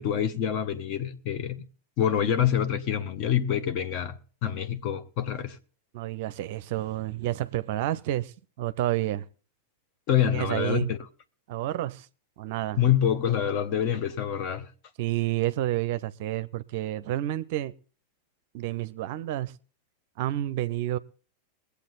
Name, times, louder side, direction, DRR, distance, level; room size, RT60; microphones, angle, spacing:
voice 1, 0.0-1.6 2.0-5.6 10.1-11.0 12.8-14.7, left 9 dB, 40° left, 1.0 m, -26 dB
voice 2, 5.9-9.2 10.3-10.9 11.5-12.1 12.4-12.8 15.0-17.7 18.5-19.5 20.2-21.0, right 14 dB, 50° right, 0.5 m, -29 dB
22.5 x 8.2 x 4.0 m
figure-of-eight pair, 90°, 0 cm